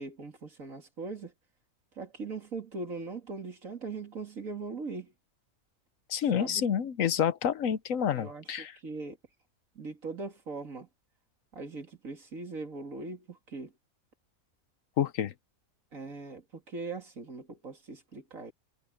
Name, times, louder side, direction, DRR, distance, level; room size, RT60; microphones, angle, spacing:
voice 1, 0.0-1.3 2.0-5.1 6.3-6.6 8.1-9.2 9.7-10.9 11.5-13.7 15.9-18.5, right 3 dB, 65° right, 3.1 m, -40 dB
voice 2, 6.1-8.8 15.0-15.3, left 8 dB, 65° left, 1.2 m, -28 dB
omnidirectional pair, 1.5 m